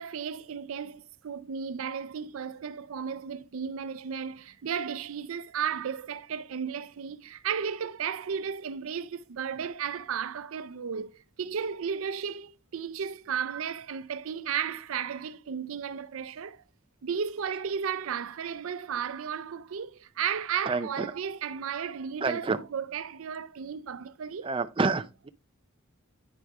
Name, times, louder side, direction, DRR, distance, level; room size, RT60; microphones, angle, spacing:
voice 1, 0.0-16.6 17.0-24.5, right 7 dB, 80° right, 0.5 m, -34 dB
voice 2, 22.2-22.6 24.4-25.3, right 4 dB, 25° right, 0.4 m, -28 dB
9.4 x 4.6 x 3.6 m
head